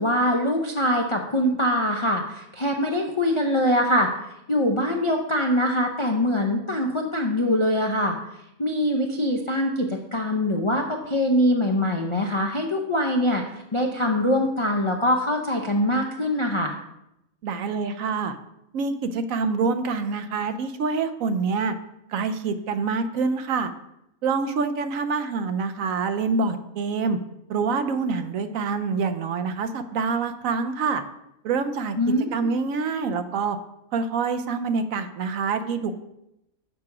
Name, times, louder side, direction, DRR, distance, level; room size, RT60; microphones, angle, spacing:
voice 1, 0.0-4.1 4.5-8.2 8.6-13.4 13.7-16.7 32.0-32.5, left 1 dB, 45° left, 1 dB, 0.4 m, -23 dB
voice 2, 17.4-18.4 18.7-21.7 22.1-23.7 24.2-27.2 27.5-31.0 31.4-32.0 32.3-33.6 33.9-36.0, right 4 dB, 70° right, 10 dB, 1.0 m, -26 dB
6.7 x 5.8 x 4.8 m, 0.84 s
omnidirectional pair, 1.5 m